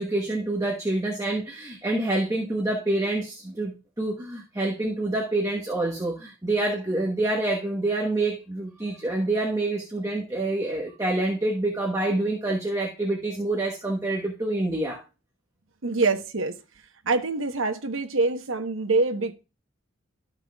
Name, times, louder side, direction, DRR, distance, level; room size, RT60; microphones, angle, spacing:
voice 1, 0.0-15.0, right 2 dB, 15° right, 1.2 m, -27 dB
voice 2, 15.8-16.5 17.1-19.3, right 3 dB, 80° right, 1.0 m, -25 dB
13.0 x 5.9 x 2.3 m
head